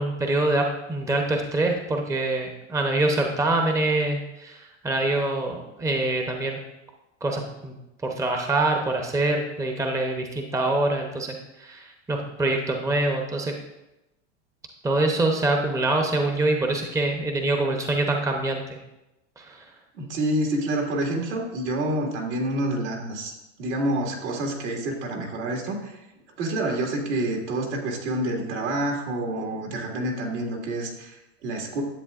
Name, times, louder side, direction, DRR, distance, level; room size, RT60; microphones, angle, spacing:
voice 1, 0.0-6.6 7.2-7.7 8.0-13.5 14.8-18.8 19.4-19.6, right 2 dB, 10° right, 3 dB, 0.8 m, -25 dB
voice 2, 19.9-26.0 26.4-31.8, right 1 dB, 70° right, 1 dB, 2.1 m, -28 dB
10.5 x 7.6 x 2.5 m, 0.95 s
hypercardioid pair, 105°, 36 cm